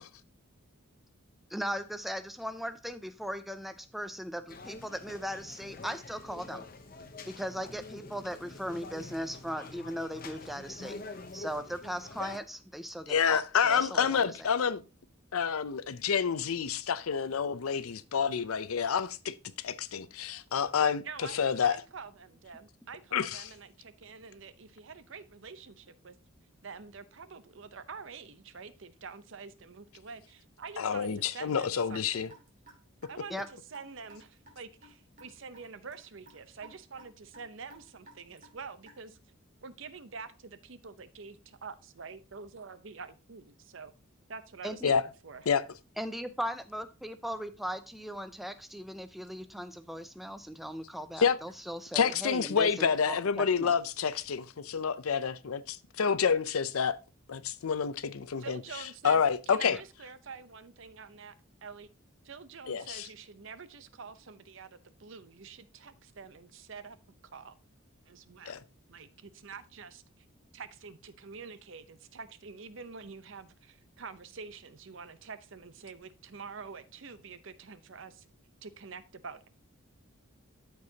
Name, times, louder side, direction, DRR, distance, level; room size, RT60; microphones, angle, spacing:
voice 1, 1.5-6.6 7.3-11.0 11.3-14.2 33.3-33.5 44.6-44.9 46.0-53.7 59.7-59.8, equal, ahead, 0.5 m, -38 dB
sound 1, 4.5-12.4, left 3 dB, 40° left, 0.7 m, -46 dB
voice 2, 13.1-14.8 15.3-21.0 21.3-21.8 23.1-23.5 30.8-32.3 44.8-45.0 45.5-45.6 51.2-51.4 51.9-57.0 57.3-58.6 59.0-59.8 62.7-63.1 68.5-68.6, left 6 dB, 85° left, 0.5 m, -28 dB
voice 3, 21.0-26.2 26.6-32.3 33.1-39.2 39.6-43.9 44.3-44.8 45.2-45.4 58.4-61.3 61.6-61.9 62.2-67.0 67.2-67.5 68.0-68.6 68.9-70.2 70.5-78.2 78.6-79.5, right 5 dB, 60° right, 0.7 m, -47 dB
Raindrop / Drip, 31.9-39.2, right 2 dB, 40° right, 2.3 m, -55 dB
13.5 x 4.7 x 2.8 m
head